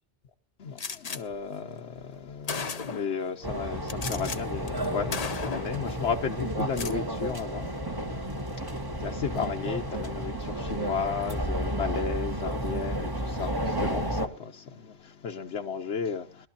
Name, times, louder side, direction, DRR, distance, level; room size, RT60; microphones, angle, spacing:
voice 1, 0.6-16.5, left 6 dB, 85° left, 1.2 m, -34 dB
Gunshot gunfire, 0.8-1.2 2.0-2.1 2.5-3.2 3.9-4.4 4.7-4.9 5.1-5.8 6.6-7.0, left 5 dB, 40° left, 0.8 m, -34 dB
sound 1, 3.4-14.3, right 1 dB, 20° right, 1.3 m, -32 dB
22.0 x 12.5 x 2.8 m
omnidirectional pair, 1.1 m